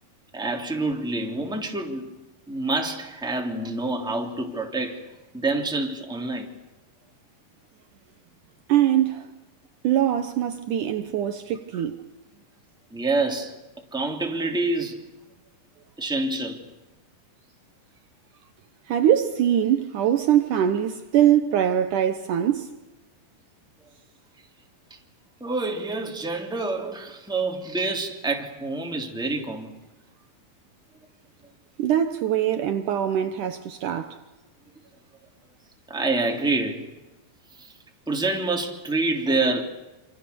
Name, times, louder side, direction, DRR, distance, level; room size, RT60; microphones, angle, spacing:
voice 1, 0.3-2.1 2.5-5.1 5.3-6.5 11.7-11.8 12.9-13.5 13.9-15.0 16.0-16.6 24.9-25.0 25.4-29.7 35.9-36.9 37.6-37.7 38.1-39.6, right 2 dB, ahead, 2.5 m, -27 dB
voice 2, 8.7-9.3 9.8-12.0 18.9-22.7 31.8-34.2, right 10 dB, 70° right, 2.3 m, -22 dB
27.5 x 26.5 x 7.0 m
omnidirectional pair, 4.1 m